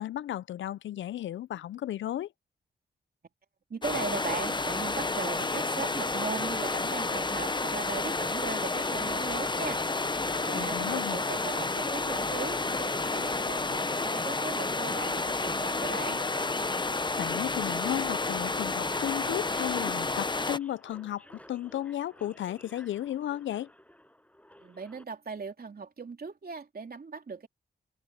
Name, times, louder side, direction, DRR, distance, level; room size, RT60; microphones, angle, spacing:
voice 1, 0.0-2.3 10.5-11.2 17.2-23.7, left 12 dB, 80° left, 0.5 m, -34 dB
voice 2, 3.7-16.2 24.6-27.5, right 5 dB, 50° right, 3.3 m, -38 dB
sound 1, 3.8-20.6, left 3 dB, 25° left, 0.9 m, -30 dB
Subway metro underground, 6.2-25.0, left 1 dB, 5° left, 7.7 m, -56 dB
cardioid pair, 50°, 19 cm